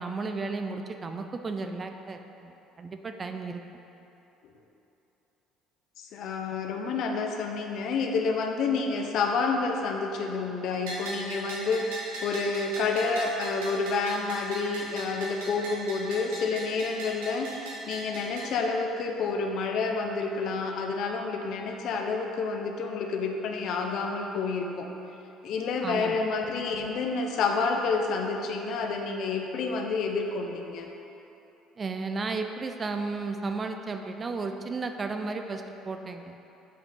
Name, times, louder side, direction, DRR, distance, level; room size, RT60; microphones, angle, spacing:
voice 1, 0.0-2.5 2.8-3.6 25.8-26.2 31.8-36.4, right 3 dB, 35° right, 6 dB, 0.5 m, -34 dB
voice 2, 6.0-24.9 25.4-30.9, left 4 dB, 65° left, 3 dB, 0.7 m, -29 dB
Bell, 10.9-18.5, right 1 dB, 85° right, 1.4 m, -38 dB
8.0 x 4.8 x 3.8 m, 3.0 s
hypercardioid pair, 70°, 0 cm